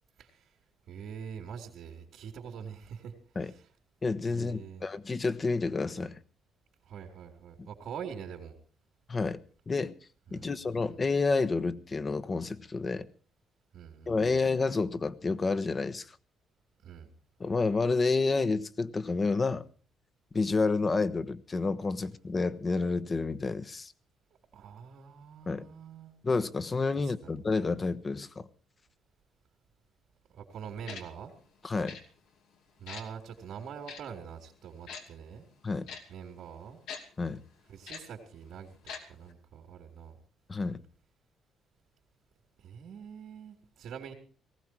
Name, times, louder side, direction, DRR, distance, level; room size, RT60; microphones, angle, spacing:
voice 1, 0.9-3.1 4.3-4.8 6.9-8.6 10.3-10.5 13.7-14.4 16.8-17.1 24.5-26.1 27.1-27.3 30.3-31.3 32.8-35.4 36.1-36.8 37.7-38.7 39.1-40.2 42.6-44.1, right 7 dB, 75° right, 3.6 m, -44 dB
voice 2, 4.0-6.2 7.6-7.7 9.1-9.4 9.7-9.9 10.3-13.1 14.1-16.1 17.4-19.6 20.3-23.9 25.5-25.7 26.2-28.5 31.6-32.0 35.6-35.9 37.2-37.4 40.5-40.8, left 3 dB, 30° left, 1.1 m, -29 dB
Tick-tock, 30.9-31.0 31.9-32.0 32.9-33.0 33.9-34.0 34.9-35.0 35.9-36.0 36.9-37.0 37.9-38.0 38.9-39.0 39.3-39.4, left 6 dB, 90° left, 2.8 m, -41 dB
19.0 x 15.5 x 4.7 m
cardioid pair, 90°, 0 cm